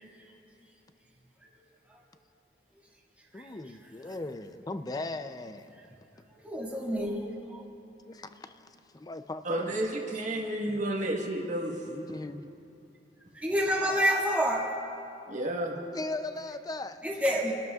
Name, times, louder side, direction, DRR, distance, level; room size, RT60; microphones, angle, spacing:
voice 1, 3.3-5.7 7.4-7.7 8.1-8.7 8.9-9.8 11.8-12.5 15.8-17.1, left 2 dB, 20° left, 0.4 m, -38 dB
voice 2, 6.3-7.6 13.3-14.7 17.0-17.5, equal, 10° right, 2.0 m, -28 dB
voice 3, 9.4-11.8 15.3-15.7, right 1 dB, 45° right, 1.4 m, -31 dB
29.0 x 12.0 x 2.4 m
head